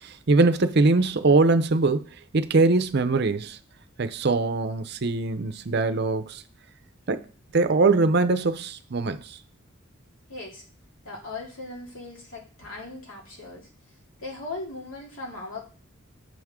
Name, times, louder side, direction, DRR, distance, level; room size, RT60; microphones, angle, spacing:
voice 1, 0.0-2.1 2.3-3.6 4.0-6.4 7.1-7.2 7.5-9.4, right 3 dB, 50° right, 0.6 m, -22 dB
voice 2, 10.3-10.6 11.0-13.7 14.2-15.7, left 2 dB, 75° left, 2.5 m, -38 dB
6.3 x 6.3 x 3.6 m
head